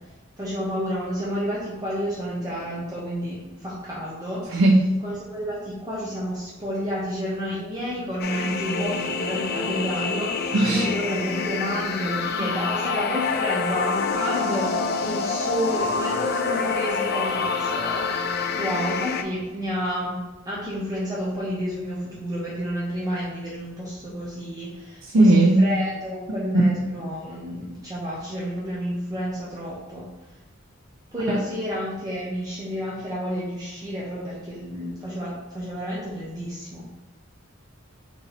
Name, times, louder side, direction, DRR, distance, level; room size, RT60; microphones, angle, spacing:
voice 1, 0.4-4.6 5.0-30.0 31.1-36.9, equal, 20° right, -7 dB, 0.8 m, -30 dB
voice 2, 4.5-5.0 10.5-10.9 25.1-25.6 31.3-31.4, right 2 dB, 70° right, -1 dB, 0.5 m, -17 dB
sound 1, 8.2-19.2, left 5 dB, 50° left, 0.4 m, -27 dB
4.1 x 3.1 x 4.1 m, 1.1 s
head